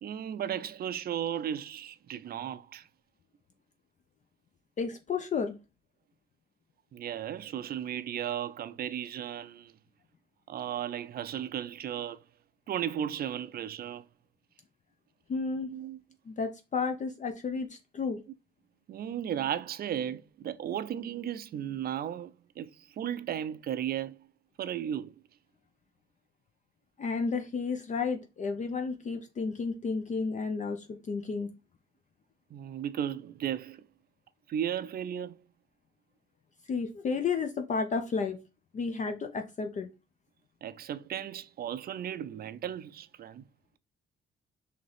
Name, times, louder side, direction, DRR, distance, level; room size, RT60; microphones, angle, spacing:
voice 1, 0.0-2.9 6.9-9.7 10.5-12.2 12.7-14.0 15.7-16.0 18.9-24.3 24.6-25.1 32.5-33.8 34.5-35.4 40.6-43.4, right 10 dB, 50° right, 0.4 m, -35 dB
voice 2, 4.8-5.5 15.3-15.7 16.3-18.2 27.0-31.5 36.7-38.4 38.7-39.9, left 4 dB, 40° left, 0.5 m, -32 dB
3.9 x 2.9 x 3.2 m
cardioid pair, 90°, 20 cm